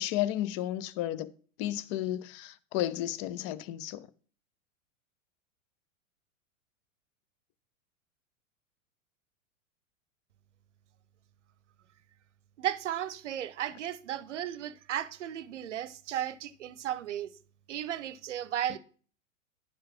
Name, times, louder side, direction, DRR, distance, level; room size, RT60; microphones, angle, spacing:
voice 1, 0.0-1.3 1.6-4.1, left 13 dB, 25° left, 0.4 m, -33 dB
voice 2, 12.6-17.3 17.7-18.8, right 11 dB, 60° right, 0.8 m, -35 dB
10.5 x 4.7 x 5.8 m
figure-of-eight pair, 95°, 40 cm